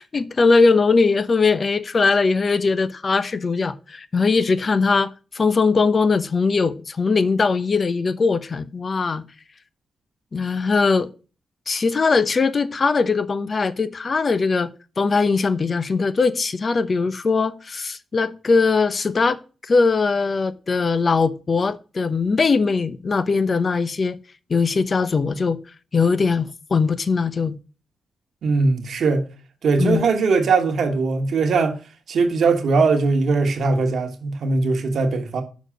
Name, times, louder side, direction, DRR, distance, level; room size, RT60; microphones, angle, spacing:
voice 1, 0.0-9.2 10.3-11.1 11.7-14.7 15.0-19.4 19.7-24.2 24.5-25.6 25.9-27.5 29.8-30.0, left 4 dB, 50° left, 0.8 m, -20 dB
voice 2, 28.4-29.3 29.6-31.8 32.1-35.4, right 4 dB, 70° right, 1.3 m, -20 dB
6.3 x 5.2 x 6.2 m
supercardioid pair, 50°, 0 cm